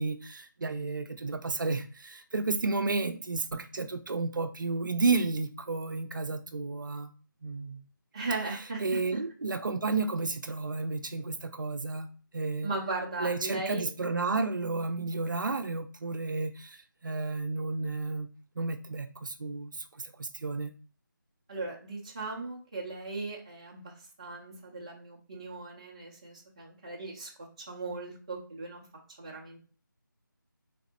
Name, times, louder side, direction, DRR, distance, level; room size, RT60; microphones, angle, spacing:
voice 1, 0.0-7.1 7.4-7.8 8.8-12.1 12.3-12.7 13.2-18.3 18.6-20.7, right 3 dB, 65° right, 0.5 m, -32 dB
voice 2, 8.1-9.0 12.6-13.8 21.5-23.9 24.2-28.9 29.2-29.6, right 3 dB, 20° right, 0.5 m, -37 dB
3.5 x 2.0 x 3.8 m
figure-of-eight pair, 170°, 11 cm